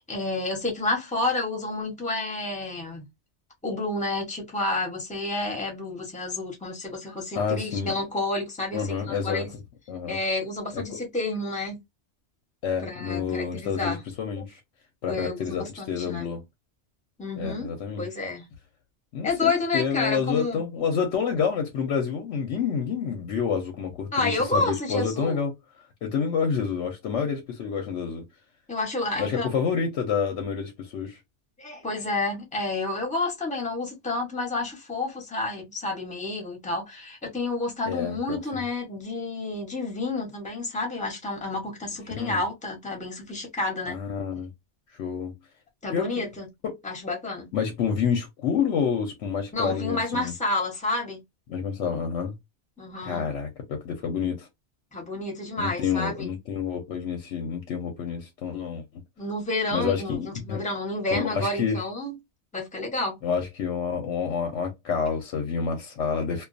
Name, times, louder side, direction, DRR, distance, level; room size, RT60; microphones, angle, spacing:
voice 1, 0.1-3.1 3.6-9.4 10.1-11.8 12.8-14.0 15.1-16.3 17.2-18.4 19.2-20.6 24.1-25.4 28.7-29.5 31.6-44.0 45.8-46.5 46.8-47.5 49.5-51.2 52.8-53.2 54.9-56.3 59.2-62.1 62.5-63.2, left 2 dB, 10° left, 0.7 m, -30 dB
voice 2, 7.3-7.9 8.7-9.5 9.9-10.2 10.7-11.0 12.6-14.6 15.0-16.4 17.4-18.1 19.1-25.5 26.0-28.3 29.2-31.2 37.9-38.6 42.2-42.4 43.9-44.5 45.0-45.3 45.9-46.3 46.6-46.8 47.5-50.3 51.5-52.3 53.0-54.5 55.6-59.0 59.7-60.6 61.1-61.8 63.2-66.4, left 6 dB, 80° left, 0.9 m, -28 dB
2.3 x 2.3 x 2.4 m
omnidirectional pair, 1.2 m